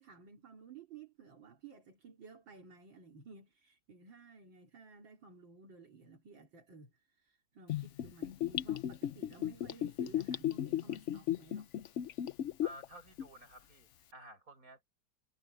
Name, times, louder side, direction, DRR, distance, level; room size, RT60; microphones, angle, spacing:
voice 1, 0.0-6.9 7.2-11.7, right 5 dB, 80° right, 3.6 m, -55 dB
Gurgling / Bathtub (filling or washing), 7.7-12.8 13.2-13.3, left 11 dB, 70° left, 0.7 m, -35 dB
voice 2, 12.6-15.0, equal, 45° right, 6.6 m, -53 dB
omnidirectional pair, 2.0 m